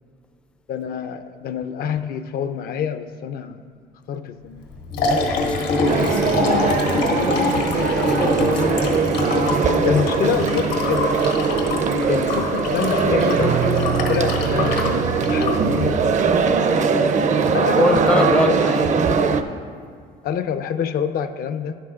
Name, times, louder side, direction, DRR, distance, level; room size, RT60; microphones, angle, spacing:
voice 1, 0.7-3.6 4.1-4.7 9.8-11.1 12.1-14.8 15.3-16.0 17.5-18.3 20.2-21.8, left 7 dB, 65° left, 10 dB, 0.5 m, -26 dB
Liquid, 4.6-16.5, left 3 dB, 90° left, 1.5 m, -25 dB
voice 2, 5.0-7.1 7.8-9.0 17.5-18.9, left 2 dB, 5° left, 7 dB, 0.3 m, -26 dB
sound 1, 5.9-19.4, right 5 dB, 45° right, 0.6 m, -20 dB
Guitar, 13.2-16.4, right 7 dB, 85° right, 2.1 m, -28 dB
11.5 x 10.5 x 2.4 m, 2.1 s
cardioid pair, 110°, 17 cm